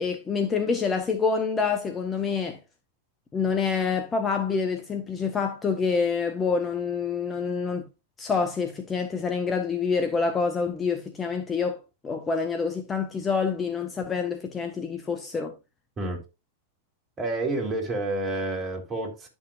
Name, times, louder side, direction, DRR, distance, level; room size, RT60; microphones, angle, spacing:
voice 1, 0.0-2.6 3.3-7.9 8.2-11.8 12.0-15.5, left 5 dB, 20° left, 1.1 m, -27 dB
voice 2, 17.2-19.3, right 2 dB, 25° right, 3.6 m, -29 dB
11.5 x 6.4 x 2.5 m
figure-of-eight pair, 90°, 0 cm